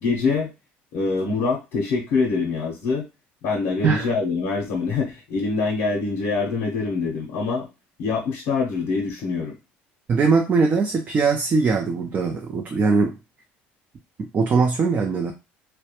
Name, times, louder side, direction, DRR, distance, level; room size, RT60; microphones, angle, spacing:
voice 1, 0.0-0.5 0.9-3.0 3.4-7.7 8.0-9.5, left 4 dB, 75° left, -2 dB, 0.6 m, -24 dB
voice 2, 10.1-13.1 14.3-15.3, right 4 dB, 35° right, 3 dB, 0.4 m, -21 dB
2.2 x 2.1 x 2.8 m, 0.27 s
supercardioid pair, 95°, 5 cm